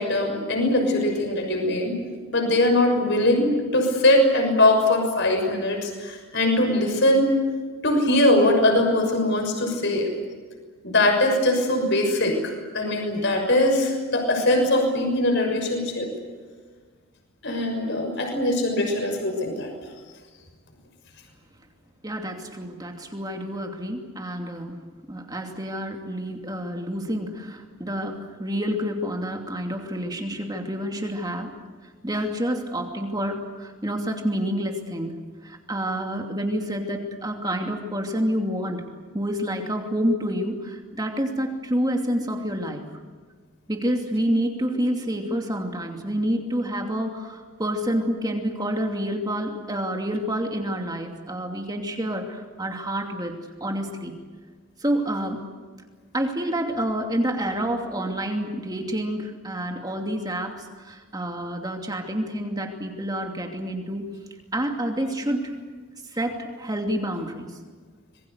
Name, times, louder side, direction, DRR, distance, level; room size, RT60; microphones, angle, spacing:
voice 1, 0.0-1.9 2.3-7.3 7.8-10.1 10.8-16.1 17.4-19.7, left 1 dB, 55° left, 4 dB, 6.3 m, -21 dB
voice 2, 22.0-24.8 25.1-31.5 31.8-35.1 35.4-38.8 39.1-43.0 43.7-53.4 53.6-54.1 54.8-55.4 56.1-64.1 64.5-65.5 66.0-67.6, equal, 20° right, 3 dB, 2.7 m, -28 dB
26.5 x 22.0 x 8.1 m, 1.5 s
head